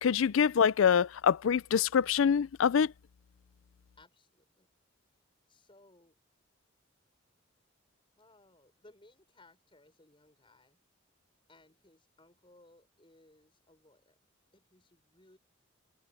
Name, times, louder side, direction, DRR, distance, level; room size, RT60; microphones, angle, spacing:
voice 1, 0.0-2.9, left 7 dB, 70° left, 0.4 m, -25 dB
voice 2, 4.0-4.7 5.5-6.2 8.2-10.8 11.5-14.2 14.5-15.4, left 2 dB, 25° left, 6.2 m, -62 dB
head